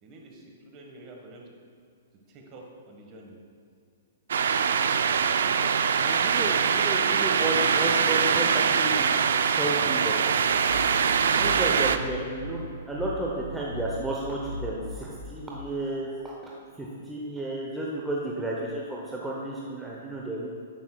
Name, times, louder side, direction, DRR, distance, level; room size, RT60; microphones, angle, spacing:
voice 1, 0.0-1.5 2.3-3.3 11.8-12.1, right 2 dB, 30° right, 1 dB, 1.3 m, -47 dB
sound 1, 4.3-12.0, right 6 dB, 80° right, 0.4 m, -23 dB
voice 2, 6.0-10.3 11.2-12.6 12.9-20.5, right 1 dB, 5° right, -4 dB, 0.7 m, -32 dB
sound 2, 10.2-15.7, left 1 dB, 60° right, 1.6 m, -39 dB
9.8 x 8.5 x 2.3 m, 2.4 s
hypercardioid pair, 150°, 0 cm